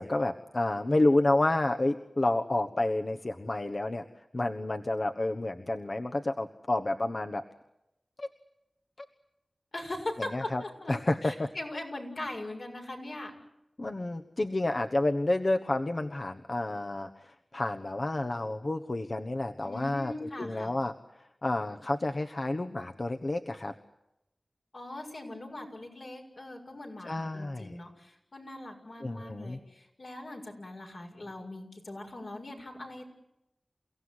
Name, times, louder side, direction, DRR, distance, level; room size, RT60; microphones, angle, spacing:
voice 1, 0.0-4.0 4.3-7.4 8.2-8.3 10.2-10.6 10.9-11.5 13.8-20.9 21.2-23.7 27.0-27.8 29.0-29.6, left 2 dB, 55° left, 6 dB, 1.2 m, -30 dB
voice 2, 9.7-10.9 11.2-13.3 19.6-20.7 24.7-33.0, left 1 dB, 75° left, 1 dB, 6.9 m, -40 dB
29.5 x 17.0 x 9.8 m, 0.90 s
cardioid pair, 40°, 0 cm